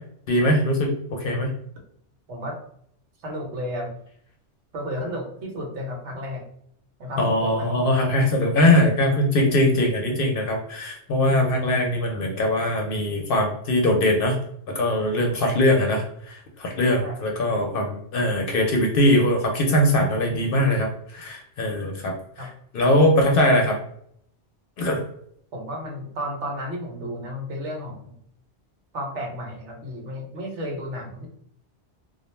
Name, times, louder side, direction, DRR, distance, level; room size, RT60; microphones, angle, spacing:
voice 1, 0.3-1.5 7.2-14.4 14.7-22.5 22.7-23.8 24.8-25.0, left 1 dB, 60° left, 2 dB, 0.7 m, -21 dB
voice 2, 3.2-3.9 4.7-6.4 7.0-7.7 17.0-17.2 22.4-22.5 25.5-28.1 28.9-31.3, equal, 80° right, 1 dB, 1.1 m, -32 dB
2.3 x 2.0 x 3.1 m, 0.66 s
omnidirectional pair, 1.2 m